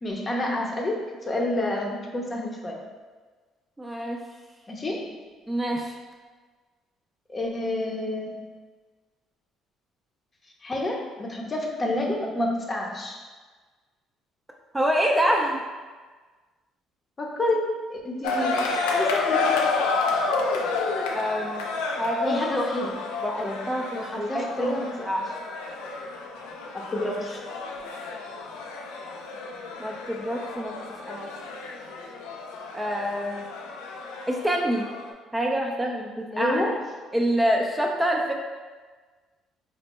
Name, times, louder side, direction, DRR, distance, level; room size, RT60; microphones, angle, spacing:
voice 1, 0.0-2.8 4.7-5.2 7.3-8.4 10.6-13.2 17.2-19.6 22.2-22.9 23.4-23.6 23.9-25.1 26.7-27.4 36.3-36.8, left 1 dB, 30° left, 0 dB, 0.6 m, -29 dB
voice 2, 3.8-4.2 5.5-6.0 14.7-15.6 21.1-21.6 22.0-22.4 23.2-23.8 24.2-24.8 25.0-25.3 29.8-30.7 31.1-31.3 32.7-33.5 34.3-34.9 35.3-36.6 37.1-38.3, equal, 10° right, 1 dB, 0.4 m, -26 dB
sound 1, 18.2-35.1, left 4 dB, 90° left, 0.3 m, -30 dB
4.3 x 2.0 x 3.0 m, 1.4 s
supercardioid pair, 75°, 0 cm